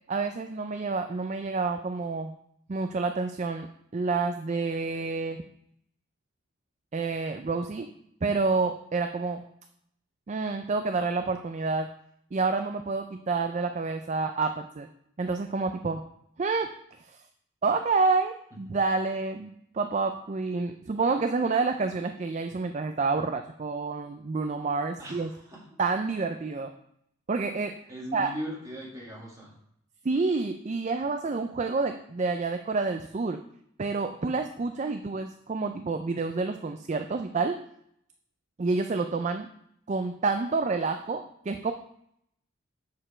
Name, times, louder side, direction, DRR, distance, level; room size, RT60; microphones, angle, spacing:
voice 1, 0.1-2.3 2.7-3.7 3.9-5.4 6.9-7.9 8.2-9.5 10.3-11.9 12.3-14.9 15.2-16.0 16.4-16.7 17.0-17.2 17.6-25.3 25.8-26.7 27.3-27.8 28.1-28.3 30.0-33.4 33.8-37.6 38.6-39.5 39.9-41.7, right 4 dB, 35° right, 7 dB, 0.4 m, -28 dB
voice 2, 25.0-25.8 27.9-29.6, equal, 15° right, -5 dB, 2.2 m, -39 dB
7.2 x 6.6 x 4.4 m, 0.72 s
head